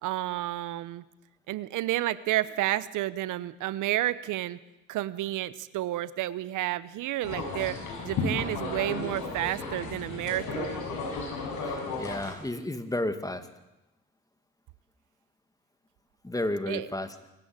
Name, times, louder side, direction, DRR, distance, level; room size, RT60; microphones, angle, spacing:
voice 1, 0.0-1.0 1.5-4.6 4.9-7.8 8.0-10.7 16.7-16.9, right 15 dB, 85° right, 17 dB, 0.9 m, -30 dB
sound 1, 7.2-12.3, left 3 dB, 80° left, 6.3 m, -34 dB
voice 2, 11.6-13.4 16.2-17.1, left 1 dB, 10° left, 10 dB, 2.1 m, -32 dB
25.0 x 14.5 x 8.9 m, 0.95 s
cardioid pair, 90°, 30 cm